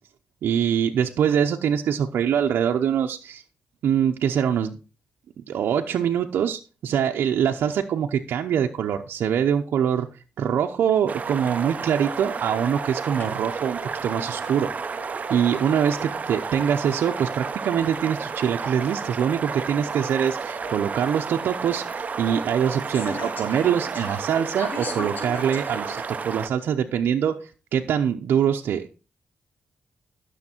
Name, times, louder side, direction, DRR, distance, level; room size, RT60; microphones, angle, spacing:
voice 1, 0.4-3.4 3.8-4.8 5.5-14.7 15.3-28.9, right 8 dB, 85° right, 2 dB, 0.8 m, -24 dB
sound 1, 11.1-26.5, right 5 dB, 45° right, 0.7 m, -32 dB
sound 2, 11.2-26.1, left 3 dB, 60° left, 4.0 m, -43 dB
12.5 x 6.6 x 4.4 m, 0.33 s
cardioid pair, 80°, 4 cm